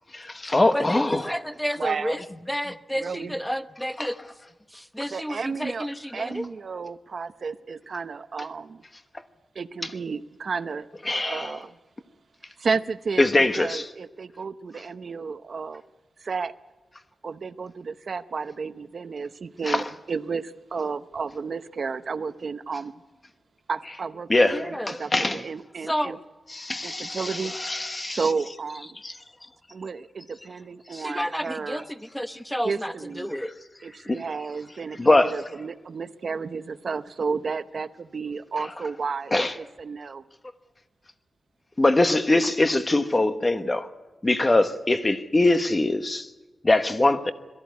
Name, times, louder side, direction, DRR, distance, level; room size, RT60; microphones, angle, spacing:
voice 1, 0.2-1.2 4.0-4.1 11.1-11.5 13.2-13.9 19.7-19.8 24.3-25.4 26.5-28.2 29.0-29.1 34.0-34.2 35.0-35.3 39.3-39.5 41.8-43.9 44.2-46.3 46.6-47.3, left 2 dB, 25° left, 1.2 m, -22 dB
voice 2, 0.7-2.2 2.5-4.2 4.7-6.5 24.5-25.0 25.9-26.2 30.9-33.5, equal, ahead, 0.9 m, -31 dB
voice 3, 1.8-2.2 3.0-3.4 5.1-5.9 6.1-8.8 9.5-11.8 12.6-15.8 16.2-16.5 17.2-23.0 23.7-26.2 26.8-27.5 28.1-29.0 29.7-31.8 32.6-33.3 33.8-40.2, right 5 dB, 60° right, 0.8 m, -32 dB
22.5 x 14.0 x 9.5 m
wide cardioid pair, 100°, 0 cm